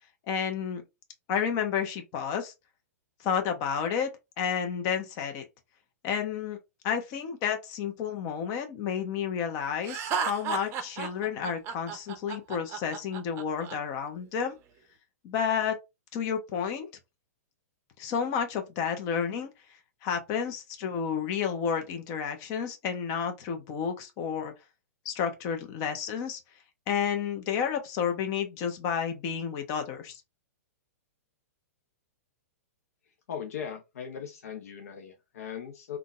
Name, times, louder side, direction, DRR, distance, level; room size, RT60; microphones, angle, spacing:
voice 1, 0.3-0.8 1.3-2.5 3.2-4.1 4.4-5.4 6.0-6.6 6.8-14.6 15.2-15.8 16.1-16.9 18.0-19.5 20.0-24.5 25.0-26.4 26.9-30.2, left 7 dB, 40° left, 0.9 m, -31 dB
Laughter, 9.8-13.8, right 6 dB, 30° right, 0.6 m, -33 dB
voice 2, 33.3-36.0, left 8 dB, 70° left, 0.7 m, -39 dB
3.7 x 2.4 x 2.4 m
hypercardioid pair, 120°, 8 cm